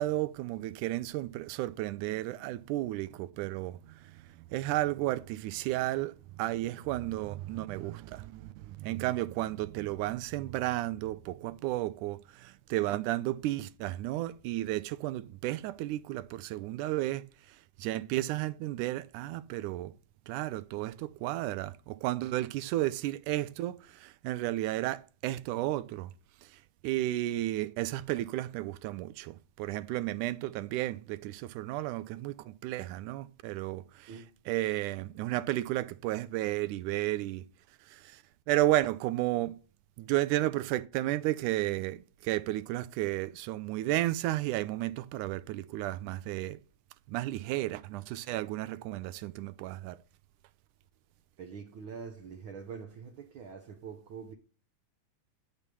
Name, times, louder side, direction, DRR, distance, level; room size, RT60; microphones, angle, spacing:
voice 1, 0.0-3.7 4.5-17.2 17.8-19.9 20.3-26.1 26.8-33.8 34.5-37.4 37.9-38.0 38.5-39.6 40.0-46.6 47.1-50.0, right 16 dB, 85° right, 2.1 m, -33 dB
voice 2, 51.4-54.3, right 6 dB, 65° right, 1.3 m, -44 dB
9.1 x 6.8 x 6.8 m
omnidirectional pair, 3.5 m